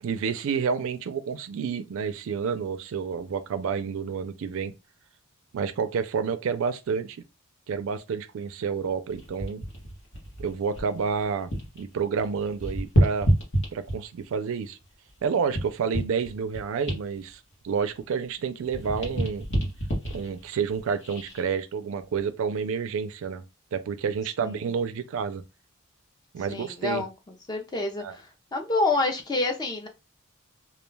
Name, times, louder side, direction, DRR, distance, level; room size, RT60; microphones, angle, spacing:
voice 1, 0.0-4.7 5.5-7.2 7.7-9.6 10.4-11.5 11.8-13.3 13.7-14.8 15.2-19.5 20.1-23.4 23.7-25.4 26.3-27.0 28.0-28.2, right 6 dB, 65° right, 0.3 m, -29 dB
sound 1, 9.1-11.8 12.1-14.2 14.8-18.3 18.6-21.4 22.0-22.2, right 1 dB, 55° left, 1.0 m, -29 dB
voice 2, 26.5-27.1 27.5-28.2 28.5-29.9, left 3 dB, 20° left, 0.5 m, -27 dB
2.3 x 2.2 x 3.2 m
head